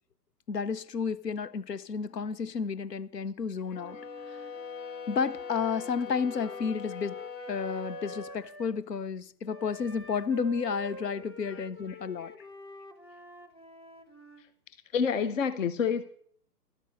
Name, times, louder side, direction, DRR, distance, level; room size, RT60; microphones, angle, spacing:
voice 1, 0.5-4.0 5.1-12.3, left 5 dB, 80° left, 0.9 m, -32 dB
sound 1, 3.6-8.4, left 6 dB, 35° left, 6.1 m, -42 dB
Wind instrument woodwind instrument, 3.7-8.8 9.5-14.4, right 1 dB, 20° left, 0.4 m, -47 dB
voice 2, 11.5-12.5 14.9-16.0, left 6 dB, 50° left, 0.8 m, -30 dB
12.0 x 12.0 x 5.3 m
figure-of-eight pair, 130°, 48 cm